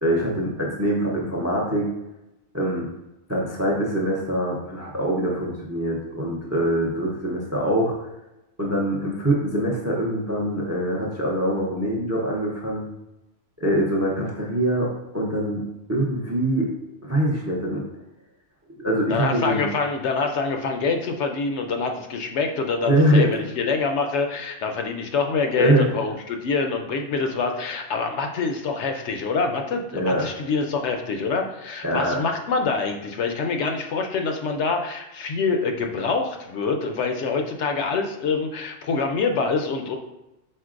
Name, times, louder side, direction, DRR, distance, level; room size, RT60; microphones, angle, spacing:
voice 1, 0.0-1.9 2.5-2.9 3.3-7.9 8.6-12.9 13.6-15.6 15.9-16.7 17.0-17.8 18.8-19.7 22.9-23.4 25.6-25.9 29.9-30.2 31.8-32.2, right 1 dB, 20° right, -1 dB, 0.4 m, -23 dB
voice 2, 19.1-40.0, left 4 dB, 70° left, 4 dB, 0.8 m, -25 dB
4.4 x 4.0 x 2.5 m, 0.93 s
omnidirectional pair, 1.3 m